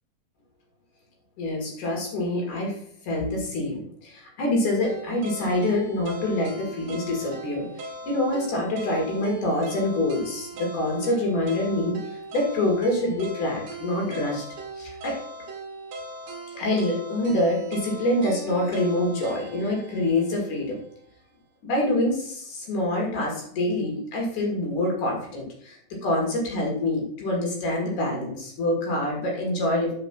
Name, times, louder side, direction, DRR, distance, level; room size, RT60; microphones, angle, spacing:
voice 1, 1.4-2.8 3.0-14.4 14.8-15.2 16.5-20.8 21.6-29.9, left 1 dB, 70° left, -1 dB, 3.6 m, -26 dB
sound 1, 4.8-20.9, right 2 dB, 65° right, 1.4 m, -39 dB
5.7 x 5.0 x 5.9 m, 0.64 s
omnidirectional pair, 3.7 m